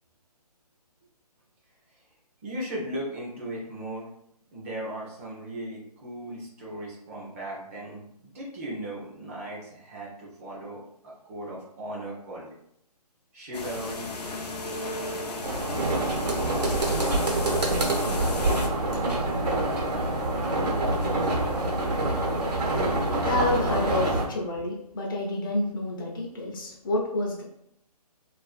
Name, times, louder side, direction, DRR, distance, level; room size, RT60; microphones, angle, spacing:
voice 1, 2.4-4.1 4.5-12.5 13.3-14.1, right 1 dB, 20° right, -4 dB, 0.5 m, -37 dB
sound 1, 13.5-18.7, left 2 dB, 80° left, 0.6 m, -35 dB
sound 2, 15.4-24.3, right 2 dB, 75° right, 0.9 m, -26 dB
voice 2, 23.2-27.4, left 2 dB, 35° left, -1 dB, 0.5 m, -29 dB
2.5 x 2.3 x 2.4 m, 0.73 s
figure-of-eight pair, 145°, 20 cm